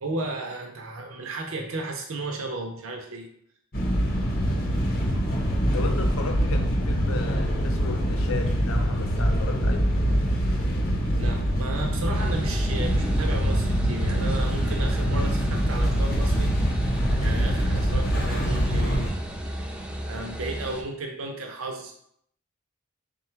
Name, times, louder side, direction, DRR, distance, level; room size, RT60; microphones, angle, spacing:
voice 1, 0.0-3.3 11.2-16.9 17.2-19.1 19.4-19.6 20.1-21.9, right 2 dB, 80° right, 2 dB, 0.5 m, -34 dB
sound 1, 3.7-19.1, equal, 45° left, 0.8 m, -24 dB
voice 2, 5.7-9.9, left 3 dB, 85° left, 4 dB, 0.7 m, -34 dB
sound 2, 12.1-20.8, equal, 5° right, 0.3 m, -34 dB
3.6 x 2.2 x 4.4 m, 0.69 s
head